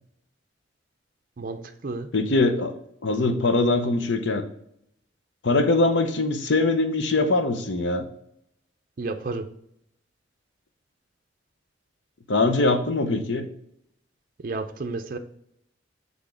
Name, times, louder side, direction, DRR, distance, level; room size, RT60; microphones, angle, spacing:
voice 1, 1.4-2.1 9.0-9.5 14.4-15.2, right 3 dB, 50° right, 6 dB, 0.5 m, -31 dB
voice 2, 2.1-2.7 3.0-4.4 5.4-8.1 12.3-13.4, left 2 dB, 80° left, 8 dB, 0.7 m, -22 dB
6.1 x 3.5 x 5.0 m, 0.73 s
head